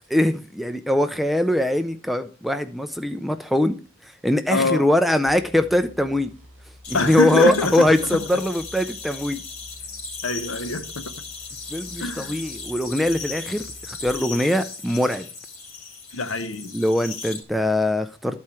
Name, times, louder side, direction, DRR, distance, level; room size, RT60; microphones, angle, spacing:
voice 1, 0.1-3.8 4.0-6.3 6.9-9.4 11.7-15.3 16.7-18.4, left 1 dB, ahead, 0.3 m, -22 dB
voice 2, 4.5-4.9 6.9-8.2 10.2-11.1 12.0-12.4 16.1-16.7, left 3 dB, 65° left, 0.8 m, -25 dB
sound 1, 5.3-14.2, equal, 35° right, 2.0 m, -48 dB
sound 2, 6.8-17.4, left 4 dB, 85° left, 2.4 m, -37 dB
12.0 x 4.4 x 4.7 m
head